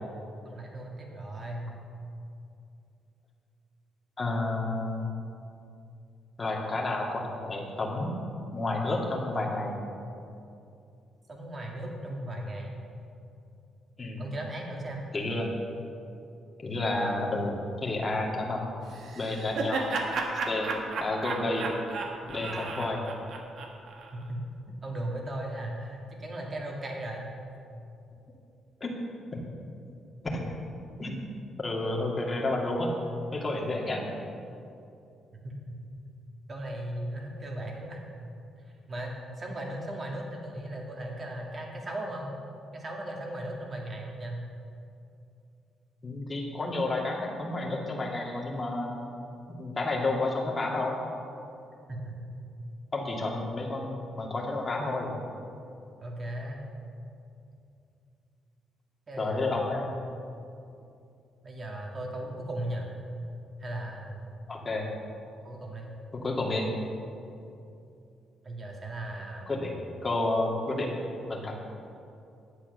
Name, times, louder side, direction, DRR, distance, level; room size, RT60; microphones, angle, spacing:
voice 1, 0.4-1.8 11.3-12.7 14.2-15.1 24.1-24.4 24.8-27.3 35.4-35.8 36.5-38.0 38.9-42.3 42.7-44.4 51.9-52.2 56.0-56.6 59.1-59.6 61.4-62.9 63.6-64.2 65.4-65.9 68.4-69.5, right 1 dB, 35° right, 0 dB, 2.2 m, -37 dB
voice 2, 4.2-5.1 6.4-8.1 8.5-9.8 14.0-14.2 15.1-15.5 16.6-18.6 19.2-19.9 20.5-20.7 21.0-21.7 22.3-23.0 28.8-28.9 29.3-29.4 30.3-30.4 31.0-31.2 31.6-32.9 33.3-34.0 46.0-49.0 49.6-51.0 52.9-55.1 59.2-59.9 64.5-64.9 66.1-66.7 69.5-69.7 70.0-70.9 71.3-71.5, left 2 dB, 30° left, -1 dB, 2.2 m, -30 dB
Laughter, 18.9-24.1, right 3 dB, 65° right, 1.5 m, -33 dB
10.5 x 8.2 x 6.6 m, 2.6 s
cardioid pair, 90°, 0 cm